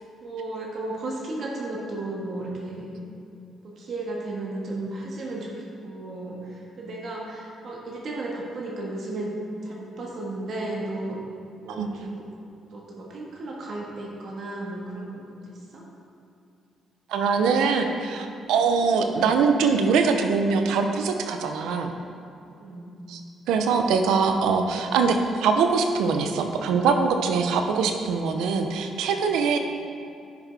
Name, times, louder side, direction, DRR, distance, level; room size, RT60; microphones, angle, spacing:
voice 1, 0.2-2.9 3.6-5.5 5.8-9.3 9.6-11.2 11.6-12.2 12.7-15.8 22.5-22.9, right 2 dB, 60° right, -3 dB, 1.6 m, -34 dB
voice 2, 17.1-21.9 23.1-23.2 23.5-29.6, right 5 dB, 90° right, 5 dB, 0.6 m, -23 dB
10.5 x 5.8 x 3.5 m, 2.6 s
cardioid pair, 90°, 0 cm